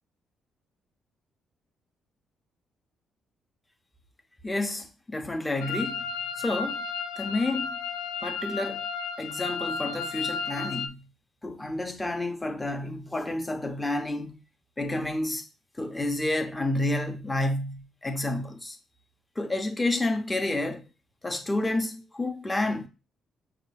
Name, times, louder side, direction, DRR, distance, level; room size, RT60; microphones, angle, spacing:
voice 1, 4.4-6.1 6.4-6.8 7.2-7.8 8.2-8.9 9.2-11.0 11.4-14.4 14.8-15.4 15.8-18.8 19.4-20.8 21.2-22.9, left 2 dB, 15° left, 0.8 m, -30 dB
sound 1, 5.6-10.9, left 5 dB, 90° left, 0.4 m, -33 dB
5.7 x 2.4 x 3.3 m
cardioid pair, 90°, 0 cm